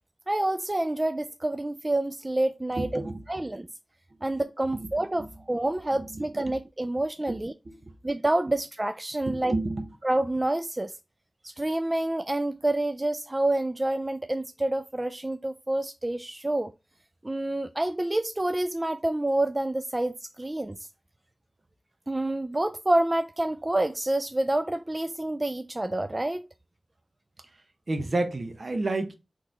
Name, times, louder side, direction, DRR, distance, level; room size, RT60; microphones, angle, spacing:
voice 1, 0.3-3.7 4.2-7.5 8.0-9.5 10.0-11.0 11.4-16.7 17.2-20.8 22.1-26.5, right 1 dB, 30° right, 0.3 m, -28 dB
voice 2, 2.8-3.3 4.7-4.9 5.2-5.3 6.1-6.2 6.5-6.6 7.3-7.9 9.3-9.9 27.9-29.1, right 2 dB, 60° right, 0.7 m, -31 dB
4.0 x 3.1 x 3.8 m
cardioid pair, 45°, 0 cm